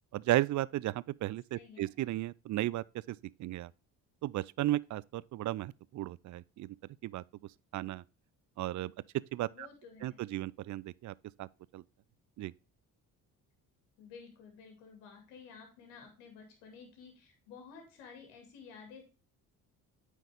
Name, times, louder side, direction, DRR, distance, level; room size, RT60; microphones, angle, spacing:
voice 1, 0.1-3.7 4.2-6.8 7.0-7.2 7.7-8.0 8.6-8.9 9.3-9.7 10.0-11.5 11.7-11.8 12.4-12.5, right 15 dB, 40° right, 0.4 m, -35 dB
voice 2, 1.5-1.9 9.5-10.2 14.0-19.0, left 5 dB, 80° left, 2.3 m, -52 dB
8.8 x 4.7 x 3.5 m
hypercardioid pair, 45°, 48 cm